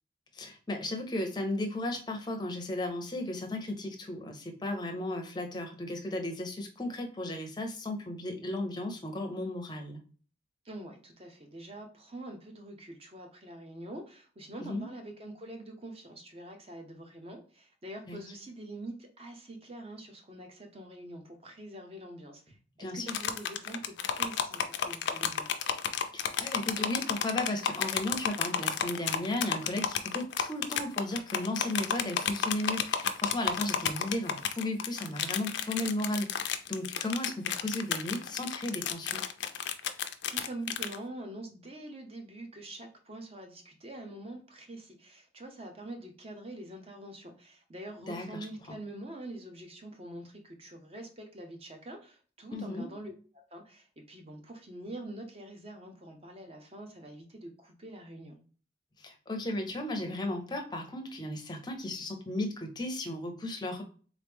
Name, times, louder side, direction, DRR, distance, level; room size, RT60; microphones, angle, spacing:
voice 1, 0.3-10.0 14.6-14.9 18.1-18.2 22.8-23.2 26.1-39.2 48.1-48.8 52.5-52.9 59.0-63.8, left 1 dB, 20° left, 4 dB, 0.6 m, -35 dB
voice 2, 10.6-25.6 40.3-53.1 53.5-58.4, right 1 dB, 30° right, 4 dB, 0.7 m, -45 dB
sound 1, 23.1-41.0, left 8 dB, 70° left, 0.4 m, -32 dB
3.7 x 3.1 x 3.5 m, 0.41 s
head